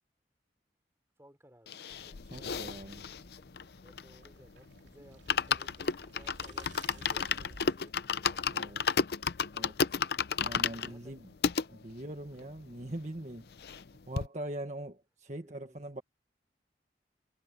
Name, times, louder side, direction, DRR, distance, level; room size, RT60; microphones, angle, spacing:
voice 1, 1.2-2.2 3.8-8.9 10.7-11.2 15.4-15.9, equal, 15° right, 4.7 m, -60 dB
sound 1, 1.7-4.4 4.8-4.9 5.1-11.7 12.2-12.3 12.5-12.6 12.9-13.9 14.2-14.3, left 6 dB, 60° left, 0.5 m, -32 dB
sound 2, 2.2-7.9, right 2 dB, 85° right, 2.6 m, -55 dB
voice 2, 2.3-3.1 8.5-8.8 9.5-10.0 10.4-11.3 11.7-13.5 14.1-16.0, right 1 dB, 40° right, 1.5 m, -42 dB
head